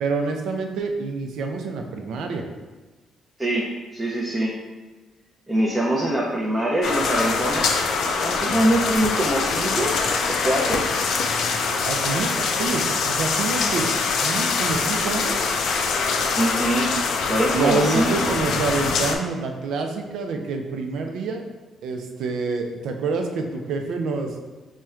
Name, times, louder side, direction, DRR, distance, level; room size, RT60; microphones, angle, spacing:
voice 1, 0.0-2.5 11.8-15.4 17.5-21.5 21.8-24.3, right 4 dB, 80° right, 4 dB, 0.4 m, -27 dB
voice 2, 3.4-4.6 5.5-7.8 8.2-9.9 10.3-10.8 16.3-16.9 17.3-18.4, right 1 dB, 15° right, -4 dB, 0.5 m, -23 dB
sound 1, 6.8-19.2, left 4 dB, 75° left, 0.3 m, -24 dB
4.2 x 2.1 x 2.3 m, 1.3 s
cardioid pair, 90°, 0 cm